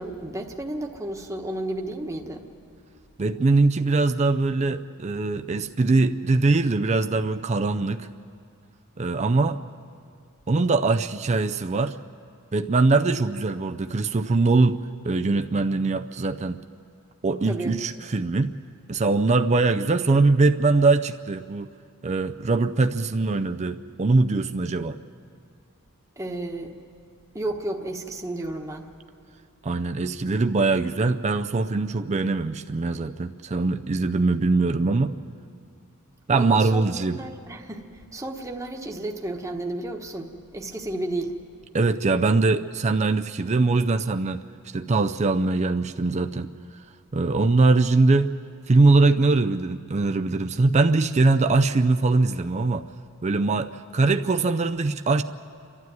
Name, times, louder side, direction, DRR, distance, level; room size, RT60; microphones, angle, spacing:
voice 1, 0.0-2.5 17.4-17.8 26.2-26.7 27.3-28.9 36.3-36.8 37.2-41.3, right 1 dB, 15° right, 1 dB, 1.2 m, -32 dB
voice 2, 3.2-8.1 9.0-9.6 10.5-12.0 12.5-16.6 17.2-18.5 18.9-21.7 22.0-25.0 29.6-35.1 36.3-37.2 41.7-44.4 44.7-46.5 47.1-48.3 48.7-52.8 53.2-55.2, right 3 dB, 30° right, 7 dB, 0.4 m, -22 dB
29.5 x 12.0 x 9.3 m, 2.4 s
head